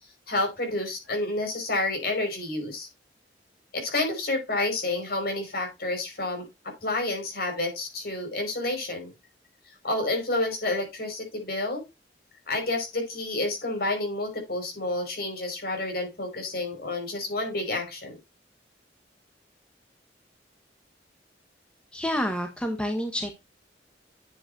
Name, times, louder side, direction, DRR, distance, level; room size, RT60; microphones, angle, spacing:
voice 1, 0.3-2.9 3.7-6.5 6.8-9.1 9.8-11.8 12.5-18.2, left 2 dB, 55° left, 3 dB, 5.2 m, -29 dB
voice 2, 21.9-23.3, equal, 5° left, 4 dB, 1.3 m, -28 dB
10.0 x 7.9 x 2.6 m, 0.23 s
head